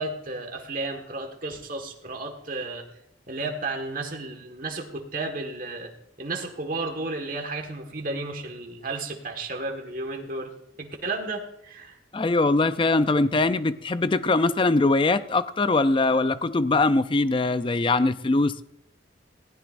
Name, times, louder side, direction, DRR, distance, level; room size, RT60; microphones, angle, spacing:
voice 1, 0.0-2.8 3.3-5.9 6.2-10.5 10.8-12.0, right 2 dB, 45° right, 3 dB, 1.6 m, -33 dB
voice 2, 12.1-18.6, left 3 dB, 25° left, 13 dB, 0.4 m, -22 dB
20.5 x 16.0 x 2.5 m, 0.79 s
head